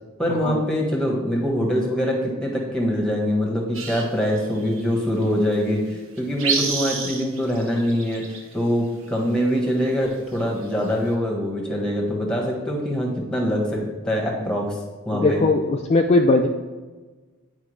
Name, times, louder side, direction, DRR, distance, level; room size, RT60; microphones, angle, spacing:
voice 1, 0.2-14.8 15.0-15.4, equal, 5° left, -1 dB, 1.3 m, -24 dB
sound 1, 3.7-4.8 5.2-5.3 5.9-6.0 6.2-8.5 9.6-11.1, right 5 dB, 65° right, 1.0 m, -29 dB
voice 2, 15.1-16.5, left 2 dB, 30° left, 3 dB, 0.3 m, -19 dB
9.6 x 4.7 x 3.2 m, 1.3 s
head